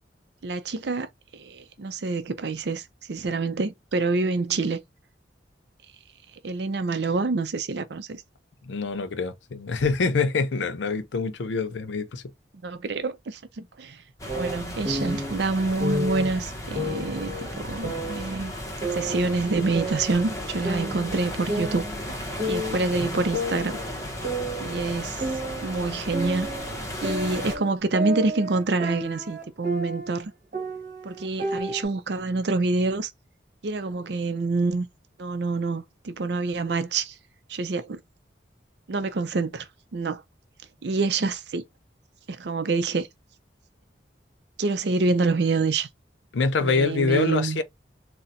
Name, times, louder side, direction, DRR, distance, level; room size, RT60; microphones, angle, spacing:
voice 1, 0.4-1.1 1.3-4.8 6.4-8.2 12.6-14.0 14.3-18.5 18.9-21.9 22.5-23.8 24.6-25.2 25.6-26.5 27.0-30.3 31.0-33.1 33.6-34.9 35.2-37.1 37.5-38.0 38.9-40.2 40.8-41.6 42.3-43.1 44.6-45.9 46.6-47.6, right 3 dB, 65° right, 0.5 m, -27 dB
voice 2, 8.6-12.2 46.3-47.6, left 4 dB, 85° left, 0.5 m, -25 dB
sound 1, 14.2-27.6, left 1 dB, 20° left, 0.7 m, -35 dB
sound 2, 14.3-15.3 15.8-16.3 16.7-18.4 18.8-20.4 20.6-22.1 22.4-22.9 23.3-25.8 26.1-30.2 30.5-31.8, right 1 dB, 45° right, 1.2 m, -31 dB
4.1 x 2.1 x 2.5 m
head